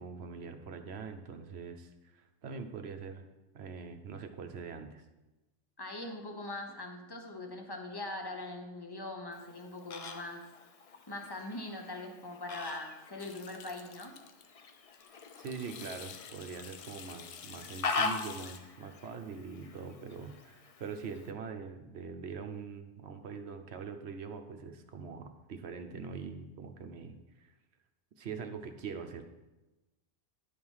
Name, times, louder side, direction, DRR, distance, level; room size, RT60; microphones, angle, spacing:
voice 1, 0.0-3.2 3.5-5.0 15.4-27.5 28.2-29.2, right 5 dB, 60° right, 7 dB, 1.0 m, -43 dB
voice 2, 5.8-10.4 11.1-14.2, left 2 dB, 20° left, 3 dB, 1.0 m, -42 dB
Fowl, 9.3-21.3, left 4 dB, 45° left, 0.4 m, -42 dB
sound 1, 13.2-14.5 14.7-18.6, left 8 dB, 80° left, 1.0 m, -49 dB
10.5 x 4.8 x 5.5 m, 1.1 s
omnidirectional pair, 1.3 m